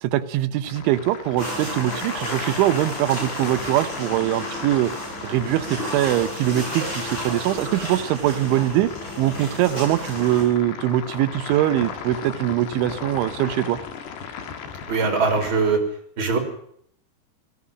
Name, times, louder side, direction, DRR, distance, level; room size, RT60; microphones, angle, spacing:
voice 1, 0.0-4.9 5.2-8.9 9.2-13.8, right 13 dB, 85° right, 11 dB, 3.4 m, -22 dB
sound 1, 0.6-15.8, left 6 dB, 65° left, 3.9 m, -37 dB
sound 2, 1.4-10.4, equal, 25° left, 8.5 m, -32 dB
voice 2, 14.9-15.8 16.2-16.4, right 4 dB, 30° right, 4 dB, 4.1 m, -21 dB
18.5 x 15.0 x 9.7 m, 0.67 s
omnidirectional pair, 5.4 m